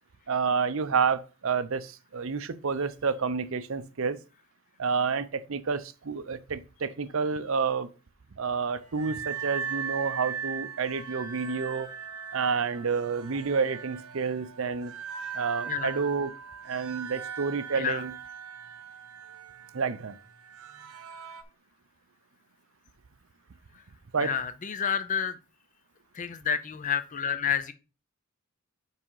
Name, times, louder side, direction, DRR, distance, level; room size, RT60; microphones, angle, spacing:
voice 1, 0.3-4.2 4.8-7.9 8.4-11.9 12.3-14.9 15.3-16.3 16.6-18.1 19.7-20.2 24.1-24.3, right 5 dB, 60° right, 0.6 m, -29 dB
sound 1, 8.8-21.4, right 7 dB, 85° right, 1.0 m, -39 dB
voice 2, 15.7-16.0 17.8-18.0 24.2-25.4 26.1-27.7, left 7 dB, 35° left, 0.5 m, -29 dB
5.5 x 4.9 x 5.5 m
head